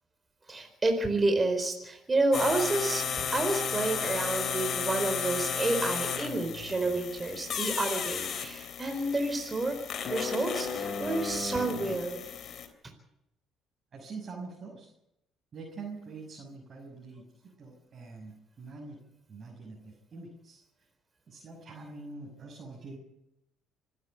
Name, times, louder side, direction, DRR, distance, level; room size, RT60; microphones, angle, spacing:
voice 1, 0.5-9.8 10.1-12.2, right 2 dB, 25° right, 5 dB, 4.3 m, -29 dB
sound 1, 2.3-12.7, left 6 dB, 55° left, 3.3 m, -34 dB
voice 2, 13.9-14.9 15.5-17.2 17.6-19.0 19.3-20.6 21.3-23.0, right 3 dB, 50° right, -2 dB, 6.3 m, -44 dB
26.0 x 11.0 x 9.3 m, 0.84 s
supercardioid pair, 65°, 0 cm